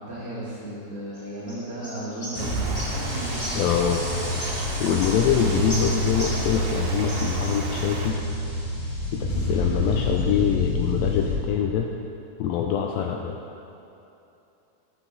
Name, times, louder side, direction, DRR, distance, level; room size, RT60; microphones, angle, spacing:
voice 1, 0.0-2.9, right 1 dB, 50° right, -9 dB, 1.9 m, -35 dB
sound 1, 1.1-6.7 7.0-8.0, equal, 35° left, 0.5 m, -37 dB
sound 2, 2.3-11.3, left 1 dB, 20° right, 0.3 m, -27 dB
Stream, 2.4-8.1, right 4 dB, 80° right, 2.7 m, -35 dB
voice 2, 3.5-4.1 4.8-8.2 9.1-11.9 12.4-13.4, left 8 dB, 85° left, 2 dB, 2.1 m, -24 dB
14.5 x 6.1 x 3.8 m, 2.9 s
omnidirectional pair, 4.5 m